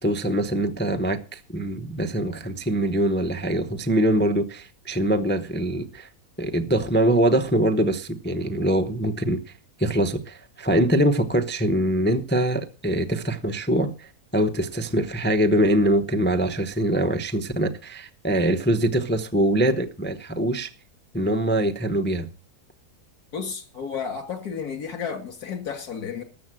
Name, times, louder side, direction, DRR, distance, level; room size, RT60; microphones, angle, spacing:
voice 1, 0.0-6.1 6.4-9.4 9.8-20.7 21.1-22.3, right 1 dB, 15° left, 0.3 m, -23 dB
voice 2, 23.3-26.2, left 6 dB, 70° left, 2.7 m, -32 dB
13.5 x 7.7 x 7.6 m
omnidirectional pair, 1.7 m